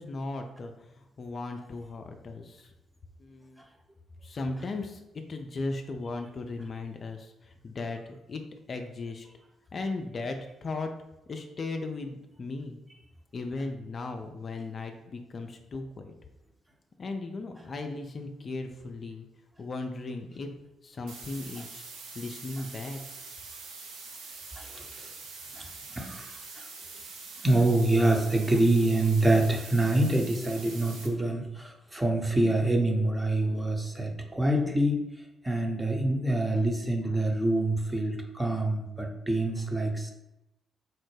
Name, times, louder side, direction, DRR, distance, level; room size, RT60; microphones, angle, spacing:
voice 1, 0.0-2.7 3.2-3.6 4.2-8.4 8.7-9.3 9.7-10.9 11.3-12.8 13.3-16.1 17.0-19.3 19.6-20.5 20.8-21.8 22.2-23.0, left 3 dB, 50° left, 5 dB, 0.4 m, -37 dB
sound 1, 21.1-31.1, right 4 dB, 75° right, 0.5 m, -44 dB
voice 2, 26.0-26.3 27.4-35.0 35.4-40.1, right 2 dB, 15° right, 2 dB, 0.7 m, -26 dB
4.2 x 2.0 x 3.2 m, 0.90 s
hypercardioid pair, 40°, 0 cm